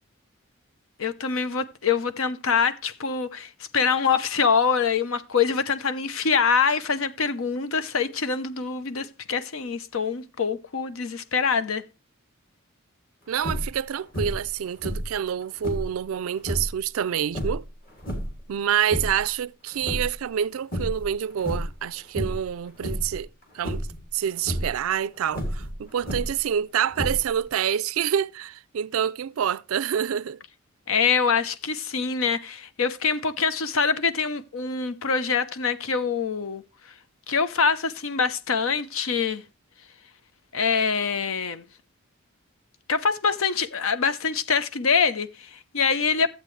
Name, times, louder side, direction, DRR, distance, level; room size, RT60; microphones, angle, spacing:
voice 1, 1.0-11.8 30.9-36.6 37.3-39.4 40.5-41.6 42.9-46.3, left 5 dB, 80° left, 0.8 m, -25 dB
voice 2, 13.3-17.6 18.5-23.3 23.5-23.9 24.1-30.4, right 9 dB, 85° right, 0.4 m, -27 dB
sound 1, 13.4-13.8 14.1-14.5 14.8-16.0 16.4-16.8 17.3-18.4 18.8-19.3 19.7-20.4 20.7-21.1 21.4-21.8 22.1-22.5 22.8-23.2 23.6-24.0 24.4-24.7 25.3-26.5 26.9-27.5, equal, 45° left, 2.6 m, -30 dB
12.5 x 8.0 x 3.2 m
head